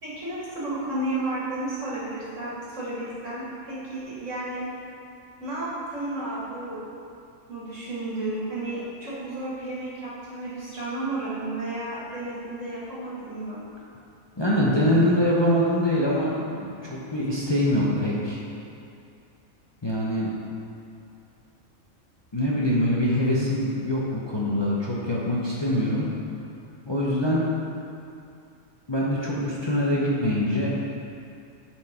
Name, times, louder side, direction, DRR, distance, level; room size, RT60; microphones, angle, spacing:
voice 1, 0.0-4.7 5.4-6.8 7.5-13.6, right 2 dB, 65° right, -7 dB, 2.2 m, -32 dB
voice 2, 14.4-18.4 19.8-20.3 22.3-26.1 26.9-27.4 28.9-30.8, left 1 dB, 25° left, -6 dB, 0.8 m, -24 dB
10.0 x 4.6 x 4.4 m, 2.6 s
omnidirectional pair, 1.4 m